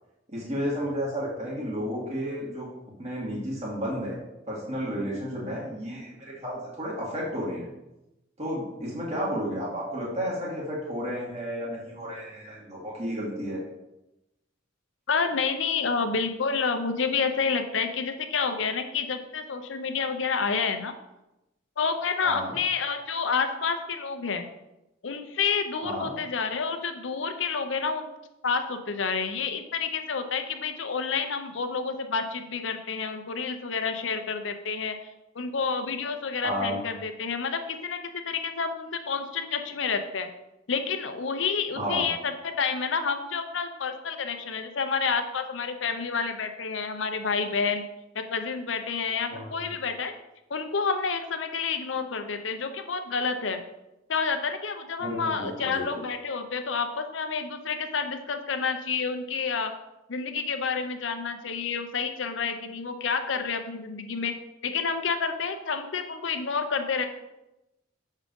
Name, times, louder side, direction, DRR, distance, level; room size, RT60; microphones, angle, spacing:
voice 1, 0.3-2.7 3.0-4.2 4.5-7.7 8.4-13.6 22.2-22.5 25.8-26.1 36.4-36.8 41.8-42.1 49.3-49.7 55.0-55.8, equal, 35° right, -5 dB, 1.7 m, -32 dB
voice 2, 15.1-20.9 21.8-24.5 25.0-28.1 28.4-35.0 35.3-40.3 40.7-47.8 48.1-50.1 50.5-53.6 54.1-59.7 60.1-64.3 64.6-67.1, left 5 dB, 75° left, 7 dB, 0.7 m, -29 dB
6.4 x 3.7 x 5.2 m, 0.94 s
head